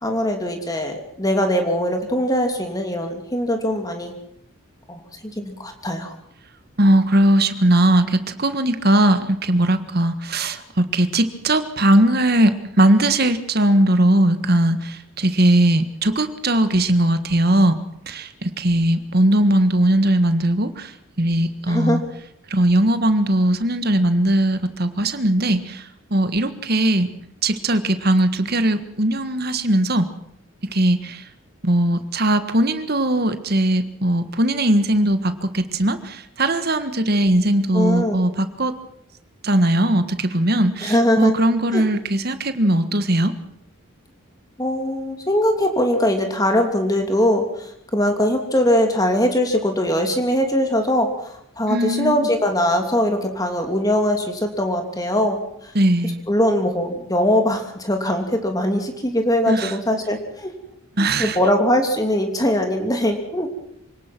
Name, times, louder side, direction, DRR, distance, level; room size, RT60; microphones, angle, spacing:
voice 1, 0.0-4.1 4.9-6.1 21.7-22.0 37.7-38.2 40.8-41.3 41.7-41.8 44.6-55.7 56.3-60.5 61.0-63.5, left 1 dB, 15° left, 4 dB, 2.9 m, -21 dB
voice 2, 6.8-17.8 18.1-22.0 22.5-27.1 27.4-30.1 30.6-31.2 31.6-38.7 39.4-43.3 51.7-52.3 55.7-56.2 59.5-59.7 61.0-61.4, right 1 dB, 45° right, 10 dB, 1.6 m, -19 dB
26.5 x 18.5 x 6.1 m, 0.77 s
head